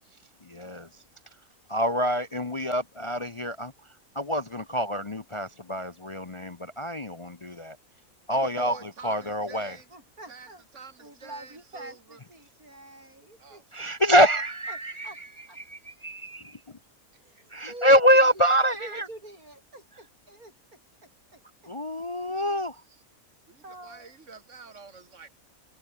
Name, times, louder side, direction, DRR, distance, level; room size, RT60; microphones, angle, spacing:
voice 1, 0.5-0.9 1.7-3.7 4.1-7.8 8.3-9.7 13.7-16.6 17.5-19.1 21.7-22.8, equal, 25° left, 0.8 m, -25 dB
voice 2, 8.3-9.8 10.3-12.2 13.4-13.7 22.9-23.0 23.5-25.3, right 4 dB, 55° right, 3.3 m, -47 dB
voice 3, 9.9-10.6 11.0-13.6 15.0-15.2 15.5-15.6 17.2-18.0 18.8-20.5 21.3-21.4 23.6-24.1, right 1 dB, 80° right, 8.7 m, -45 dB
omnidirectional pair, 1.5 m